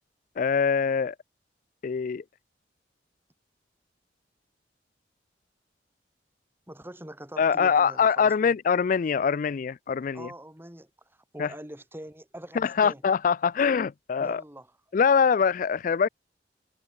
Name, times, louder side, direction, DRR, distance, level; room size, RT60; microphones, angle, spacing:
voice 1, 0.4-1.1 1.8-2.2 7.4-10.3 11.4-11.5 12.6-14.4 14.9-16.1, left 6 dB, 45° left, 0.3 m, -23 dB
voice 2, 6.7-8.5 10.1-10.9 11.3-13.0 14.2-14.7, right 1 dB, 15° right, 3.5 m, -43 dB
head